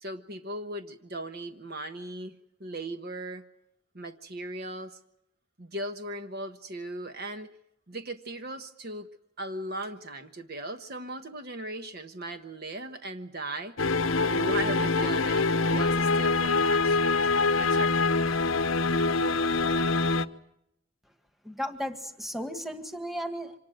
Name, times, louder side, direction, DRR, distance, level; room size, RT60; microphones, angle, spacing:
voice 1, 0.0-3.4 3.9-5.0 5.6-7.5 7.9-9.1 9.4-13.7 14.3-17.1 17.6-18.4, right 1 dB, 50° right, 7 dB, 1.3 m, -38 dB
sound 1, 13.8-20.3, left 3 dB, 85° left, 1.0 m, -25 dB
voice 2, 21.4-23.5, equal, ahead, 6 dB, 1.8 m, -35 dB
26.0 x 19.5 x 7.8 m, 0.78 s
head